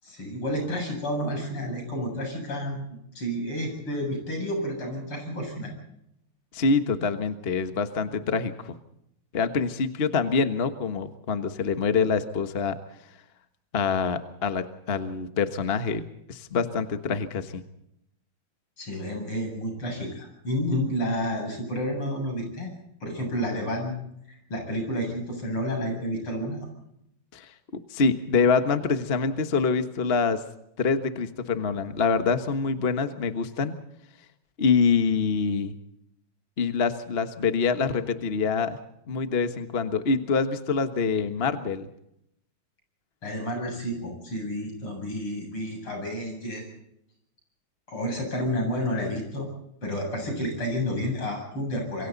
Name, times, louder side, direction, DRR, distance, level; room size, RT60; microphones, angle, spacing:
voice 1, 0.0-2.9 3.2-5.7 18.8-22.7 23.0-24.0 24.5-26.7 43.2-46.7 47.9-49.5 49.8-52.1, equal, 85° left, 3 dB, 8.8 m, -30 dB
voice 2, 6.5-8.7 9.3-12.7 13.7-16.0 16.3-17.6 27.3-27.5 27.9-30.4 30.8-33.8 34.6-35.7 36.6-38.8 39.1-41.9, left 5 dB, 30° left, 9 dB, 1.3 m, -25 dB
27.0 x 24.0 x 4.0 m, 0.76 s
omnidirectional pair, 2.4 m